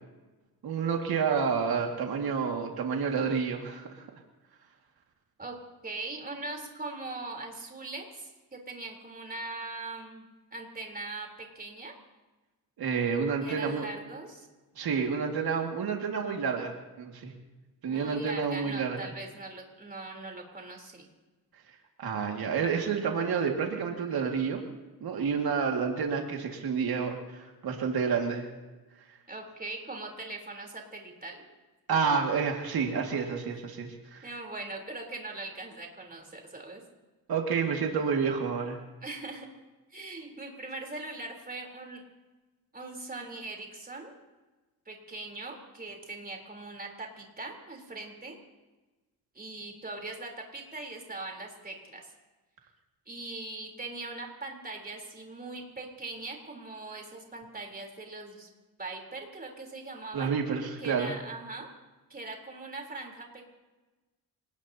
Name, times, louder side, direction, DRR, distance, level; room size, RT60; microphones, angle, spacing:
voice 1, 0.6-3.9 12.8-13.9 14.8-17.3 17.8-19.0 22.0-24.6 25.0-28.5 31.9-34.3 37.3-38.8 60.1-61.2, right 6 dB, 80° right, 2 dB, 2.1 m, -29 dB
voice 2, 5.8-11.9 13.4-14.5 17.9-21.1 29.3-31.4 31.9-32.0 34.2-36.8 39.0-39.5 39.9-42.0 42.7-44.1 44.9-48.4 49.3-52.1 53.1-58.5 58.8-60.3 60.8-61.7 62.1-63.4, right 2 dB, 25° right, 1 dB, 3.6 m, -41 dB
27.5 x 19.0 x 2.8 m, 1.2 s
cardioid pair, 110°, 37 cm